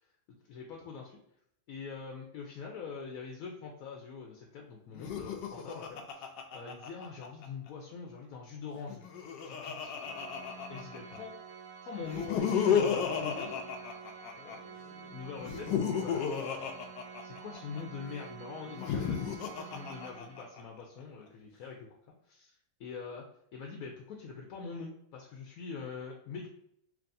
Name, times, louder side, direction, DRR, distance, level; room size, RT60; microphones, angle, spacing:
voice 1, 0.5-1.2 1.7-6.3 6.5-9.1 9.4-9.9 10.7-11.3 11.8-13.6 14.4-16.3 17.2-21.9 22.3-22.5 22.8-23.3 23.5-26.5, left 5 dB, 65° left, 0 dB, 1.0 m, -43 dB
Laughter, 4.9-7.5 8.8-11.2 12.0-14.6 15.4-17.8 18.7-20.6, left 7 dB, 90° left, 1.2 m, -33 dB
Organ, 9.9-20.8, right 6 dB, 65° right, 0.8 m, -49 dB
4.7 x 2.8 x 2.6 m, 0.72 s
omnidirectional pair, 1.8 m